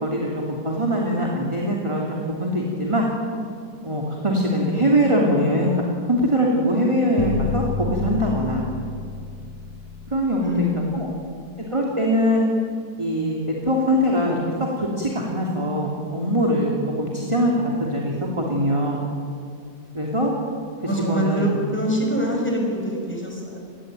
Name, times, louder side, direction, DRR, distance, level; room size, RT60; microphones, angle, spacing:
voice 1, 0.0-3.0 3.8-5.8 6.0-8.7 10.1-11.1 11.7-12.4 13.0-14.4 14.8-19.0 19.9-20.3 21.1-21.5, equal, 15° right, -2 dB, 3.1 m, -22 dB
sound 1, 7.2-11.3, left 5 dB, 70° left, 1.9 m, -30 dB
voice 2, 10.4-11.3 20.8-23.6, equal, 5° left, 0 dB, 6.6 m, -25 dB
29.0 x 19.5 x 9.2 m, 2.3 s
omnidirectional pair, 1.8 m